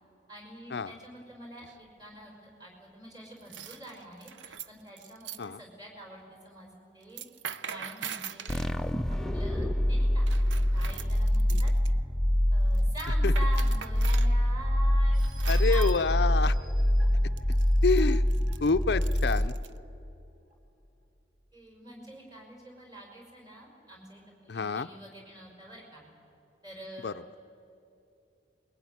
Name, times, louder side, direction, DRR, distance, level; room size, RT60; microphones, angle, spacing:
voice 1, 0.3-7.2 7.6-8.6 9.1-10.3 10.7-11.7 12.5-15.2 15.7-16.0 21.5-26.0 26.6-27.2, right 1 dB, 20° right, 0 dB, 5.6 m, -45 dB
sound 1, 1.6-2.0 3.4-5.4 7.0-8.7 10.3-11.9 12.7-14.3 15.2-16.0 17.4-19.7, right 8 dB, 85° right, 0.7 m, -42 dB
sound 2, 8.5-19.9, equal, 5° left, 0.5 m, -25 dB
sound 3, 15.1-19.5 20.0-20.1 20.5-20.6, right 3 dB, 45° right, 3.9 m, -52 dB
voice 2, 15.5-16.6 17.8-18.2 18.6-19.5 24.5-24.9 27.0-27.2, left 4 dB, 65° left, 11 dB, 0.5 m, -27 dB
23.0 x 22.0 x 9.6 m, 2.8 s
head